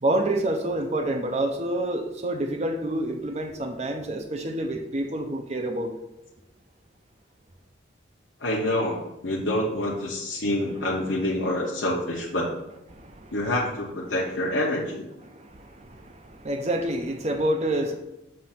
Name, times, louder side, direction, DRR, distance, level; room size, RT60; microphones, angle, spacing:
voice 1, 0.0-5.9 12.9-13.4 15.3-17.9, right 1 dB, 35° right, 5 dB, 0.6 m, -28 dB
voice 2, 8.4-12.5 13.3-15.0, left 1 dB, 80° left, -4 dB, 0.9 m, -27 dB
7.5 x 2.6 x 5.7 m, 0.94 s
head